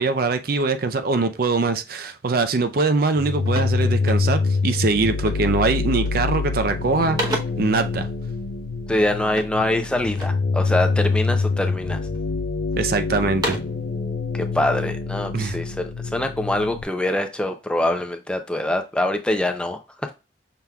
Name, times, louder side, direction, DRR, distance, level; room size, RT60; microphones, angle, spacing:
voice 1, 0.0-8.1 12.8-13.6 15.3-15.6, right 3 dB, 55° right, 0.5 m, -22 dB
sound 1, 2.6-2.8 3.1-4.6 5.2-5.6 5.9-6.4 6.7-7.8 9.3-10.5 11.0-11.6 12.1-12.8 13.2-13.9, right 1 dB, 25° right, 0.8 m, -33 dB
sound 2, 3.2-16.8, left 4 dB, 65° left, 0.5 m, -25 dB
voice 2, 8.9-12.0 14.3-20.1, left 1 dB, 5° left, 0.4 m, -24 dB
5.8 x 3.5 x 2.2 m
head